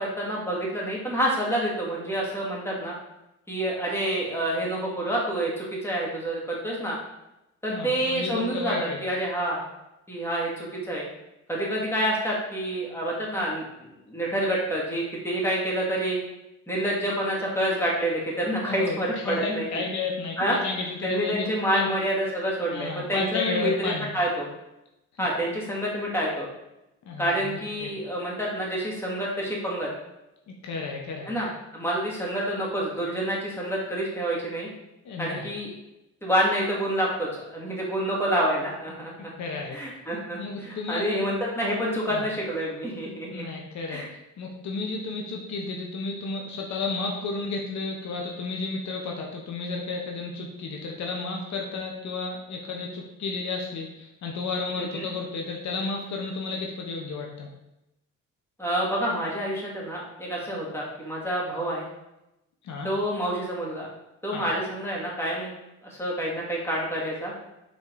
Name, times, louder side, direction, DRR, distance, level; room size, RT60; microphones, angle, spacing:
voice 1, 0.0-2.9 3.5-7.0 7.6-8.7 9.0-9.6 10.1-11.0 11.5-16.2 16.7-19.9 20.4-20.6 21.0-24.5 25.2-26.5 27.2-29.9 31.3-34.7 35.2-35.7 36.2-39.3 39.7-43.4 43.9-44.1 54.8-55.1 58.6-61.9 62.8-63.9 64.2-65.5 65.8-67.3, right 1 dB, 10° left, -4 dB, 2.3 m, -28 dB
voice 2, 7.7-9.0 18.6-20.4 20.6-21.3 21.7-21.9 22.7-24.1 25.2-25.3 27.0-27.9 30.5-31.3 35.0-35.5 39.2-39.8 40.4-41.2 42.1-42.3 43.3-44.0 44.4-57.5 62.6-62.9 64.3-64.4, left 4 dB, 65° left, 0 dB, 1.0 m, -32 dB
5.9 x 4.0 x 4.0 m, 0.90 s
cardioid pair, 90°, 30 cm